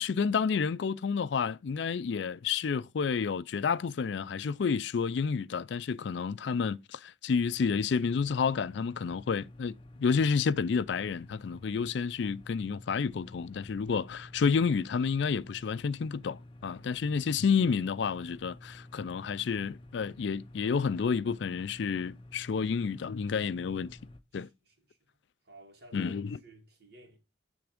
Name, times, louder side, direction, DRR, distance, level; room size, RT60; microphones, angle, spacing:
voice 1, 0.0-9.7 10.0-24.0 24.3-24.5 25.9-26.4, left 5 dB, 65° left, 0.4 m, -30 dB
Hum Phone Pressed Against Metal Door, 7.4-24.2, left 1 dB, 30° left, 0.6 m, -51 dB
voice 2, 24.3-25.0 25.4-27.2, right 3 dB, 55° right, 2.4 m, -56 dB
10.5 x 3.5 x 5.0 m
head